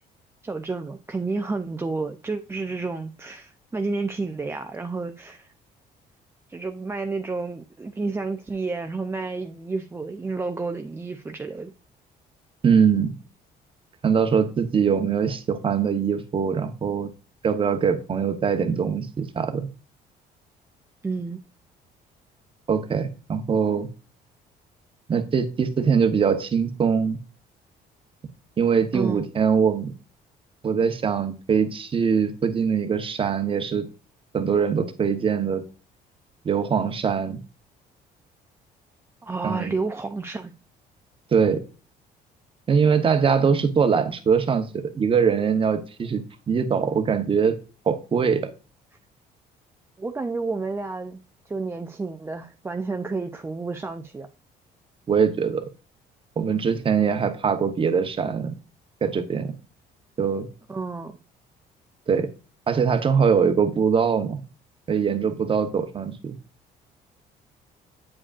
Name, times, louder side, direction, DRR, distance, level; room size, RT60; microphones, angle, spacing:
voice 1, 0.4-5.5 6.5-11.7 21.0-21.4 28.9-29.3 39.2-40.5 50.0-51.2 51.5-54.3 60.7-61.2, right 3 dB, 15° right, 0.4 m, -30 dB
voice 2, 12.6-13.1 14.0-17.1 17.4-19.7 22.7-23.9 25.1-27.2 28.6-29.9 30.6-33.9 34.3-35.6 36.4-37.4 39.4-39.7 41.3-41.6 42.7-47.5 47.9-48.5 55.1-55.7 56.4-58.5 59.0-59.5 60.2-60.5 62.1-62.3 62.7-64.4 64.9-66.4, right 6 dB, 30° right, 0.9 m, -22 dB
8.4 x 5.0 x 2.4 m
cardioid pair, 110°, 17 cm